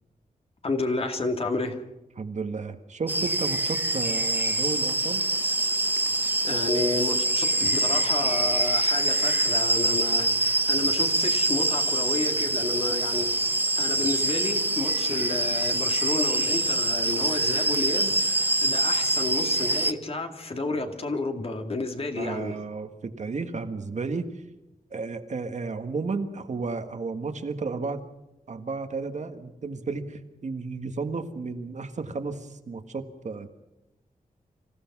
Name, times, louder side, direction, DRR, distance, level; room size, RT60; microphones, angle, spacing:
voice 1, 0.6-1.8 6.4-22.6, left 2 dB, 40° left, 5 dB, 2.3 m, -31 dB
voice 2, 2.2-5.2 22.2-24.3 24.9-28.0 28.5-33.5, right 4 dB, 50° right, 7 dB, 1.7 m, -33 dB
sound 1, 3.1-19.9, right 2 dB, 15° right, 0.7 m, -25 dB
26.5 x 16.0 x 6.1 m, 0.96 s
wide cardioid pair, 180°, 15 cm